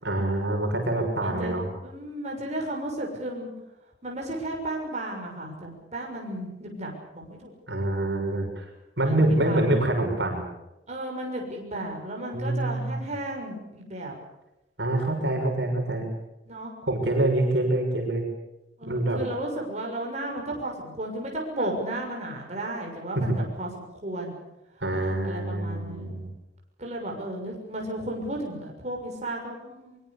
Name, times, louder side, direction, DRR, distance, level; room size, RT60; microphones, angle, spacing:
voice 1, 0.0-1.7 7.7-8.7 9.0-10.4 12.3-13.0 14.8-16.1 16.9-18.2 18.9-19.2 23.1-23.2 24.8-26.3, right 1 dB, 75° right, 3 dB, 6.6 m, -25 dB
voice 2, 1.2-1.6 1.8-3.5 4.0-7.5 9.0-9.9 10.9-14.2 16.5-16.7 18.8-23.7 24.0-24.4 25.0-26.3 26.8-30.0, right 1 dB, 40° right, 0 dB, 6.7 m, -34 dB
23.5 x 23.0 x 7.1 m, 0.93 s
head